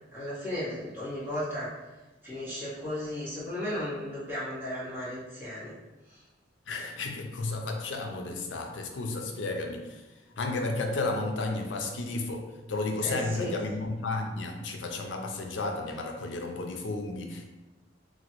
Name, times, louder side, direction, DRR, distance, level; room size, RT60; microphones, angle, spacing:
voice 1, 0.1-1.7 2.2-5.7 6.1-6.2 13.0-13.5, left 1 dB, 10° right, -11 dB, 1.4 m, -35 dB
voice 2, 6.7-10.0 10.4-17.5, left 2 dB, 75° left, 3 dB, 0.5 m, -32 dB
2.9 x 2.5 x 2.9 m, 1.1 s
head